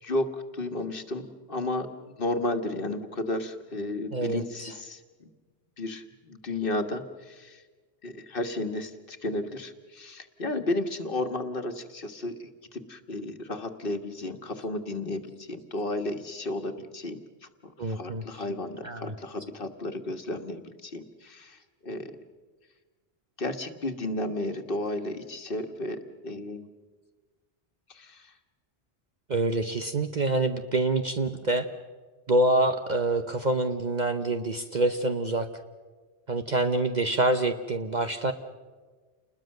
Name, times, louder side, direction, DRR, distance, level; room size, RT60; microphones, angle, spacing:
voice 1, 0.0-5.3 5.8-7.6 8.0-17.2 17.6-22.1 23.4-26.7 27.9-28.3, left 2 dB, 55° left, 7 dB, 1.6 m, -33 dB
voice 2, 4.1-4.7 17.8-18.2 18.8-19.1 29.3-31.7 32.3-35.5 36.3-38.3, right 2 dB, 45° right, 7 dB, 1.0 m, -26 dB
29.5 x 21.0 x 6.6 m, 1.4 s
omnidirectional pair, 1.1 m